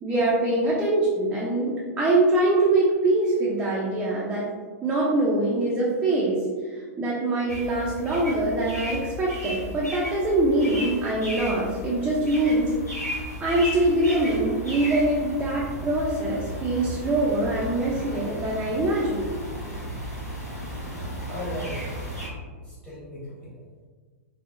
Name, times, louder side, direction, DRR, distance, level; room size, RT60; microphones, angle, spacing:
voice 1, 0.0-4.5 4.8-12.7 13.4-19.3, right 2 dB, 15° right, -6 dB, 0.4 m, -24 dB
sound 1, 7.5-22.3, equal, 85° left, 1.0 m, -35 dB
voice 2, 21.3-22.0 22.6-23.5, left 1 dB, 15° left, -7 dB, 1.1 m, -36 dB
3.4 x 2.0 x 2.5 m, 1.5 s
figure-of-eight pair, 100°, 9 cm